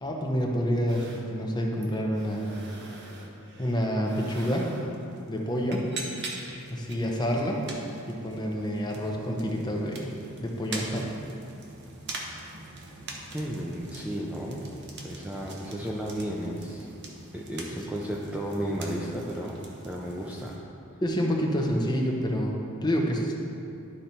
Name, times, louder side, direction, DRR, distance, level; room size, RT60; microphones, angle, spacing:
voice 1, 0.0-2.7 3.6-4.7 5.3-5.9 6.7-7.6 8.1-11.1 21.0-23.3, equal, 20° left, -1 dB, 0.8 m, -28 dB
sound 1, 0.9-20.6, right 2 dB, 55° right, 0.9 m, -43 dB
voice 2, 13.3-14.6 15.0-16.9 17.3-19.6 19.8-20.6, equal, 5° right, -3 dB, 0.5 m, -33 dB
11.5 x 4.1 x 4.4 m, 2.7 s
head